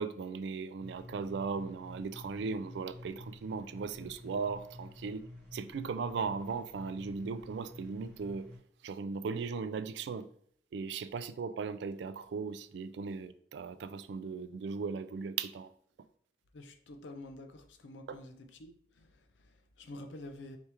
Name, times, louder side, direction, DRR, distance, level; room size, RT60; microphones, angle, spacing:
voice 1, 0.0-8.5 8.8-10.3 10.7-15.7 18.1-18.2, right 5 dB, 65° right, 0.3 m, -37 dB
sound 1, 0.8-8.6, left 1 dB, 5° left, 1.3 m, -50 dB
voice 2, 16.5-20.6, left 1 dB, 80° left, 0.6 m, -49 dB
4.5 x 3.4 x 2.8 m
head